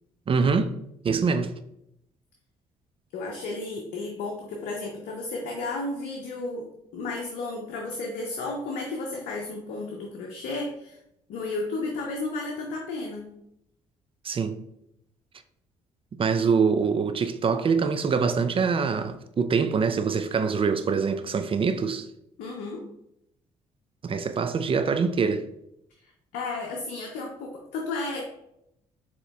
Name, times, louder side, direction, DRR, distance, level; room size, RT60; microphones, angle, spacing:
voice 1, 0.3-0.7 1.0-1.5 14.2-14.6 16.2-22.1 24.0-25.5, right 5 dB, 35° right, 0.4 m, -24 dB
voice 2, 3.1-6.7 6.9-11.0 11.3-13.3 16.4-16.5 17.1-17.2 22.4-22.9 26.0-28.3, left 3 dB, 70° left, 0.6 m, -33 dB
6.3 x 3.0 x 2.3 m
hypercardioid pair, 50°, 15 cm